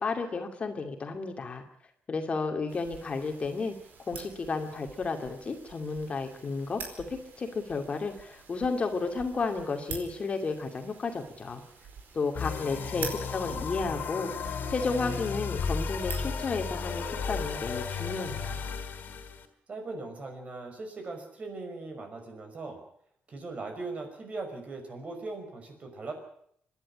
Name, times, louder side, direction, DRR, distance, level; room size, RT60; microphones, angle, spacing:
voice 1, 0.0-1.6 2.1-3.7 4.1-11.6 12.1-18.6, left 4 dB, 35° left, 5 dB, 2.5 m, -32 dB
sound 1, 2.7-18.5, right 5 dB, 70° right, 4.6 m, -47 dB
sound 2, 12.3-19.5, left 5 dB, 65° left, 3.1 m, -34 dB
voice 2, 12.4-13.0 19.7-22.8 23.3-26.1, right 3 dB, 40° right, 5 dB, 5.7 m, -40 dB
25.5 x 11.0 x 9.9 m, 0.67 s
cardioid pair, 120°, 3 cm